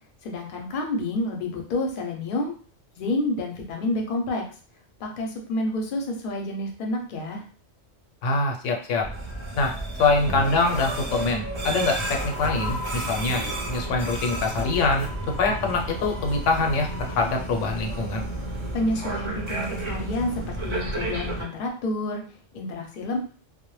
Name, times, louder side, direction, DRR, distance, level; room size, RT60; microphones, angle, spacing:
voice 1, 0.2-2.5 3.0-4.4 5.0-7.4 18.7-22.2 22.5-23.2, left 1 dB, 55° left, 2 dB, 0.7 m, -29 dB
voice 2, 8.2-9.0 9.6-9.7 10.0-15.1 15.4-18.2, left 3 dB, 85° left, 2 dB, 0.9 m, -24 dB
sound 1, 9.0-21.4, right 1 dB, 40° right, 0.4 m, -31 dB
2.1 x 2.1 x 3.0 m, 0.41 s
omnidirectional pair, 1.2 m